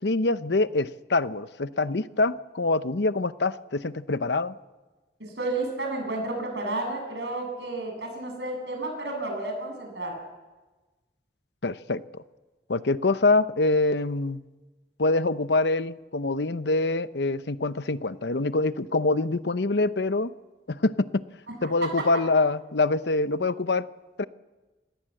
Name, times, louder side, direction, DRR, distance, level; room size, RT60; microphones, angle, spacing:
voice 1, 0.0-4.5 11.6-12.2 12.7-14.4 15.0-20.3 20.7-21.2 21.6-23.8 24.2-24.3, left 3 dB, 80° left, 14 dB, 0.8 m, -25 dB
voice 2, 5.2-10.1 21.6-21.9, right 2 dB, 85° right, 3 dB, 7.8 m, -31 dB
27.0 x 19.0 x 7.8 m, 1.2 s
head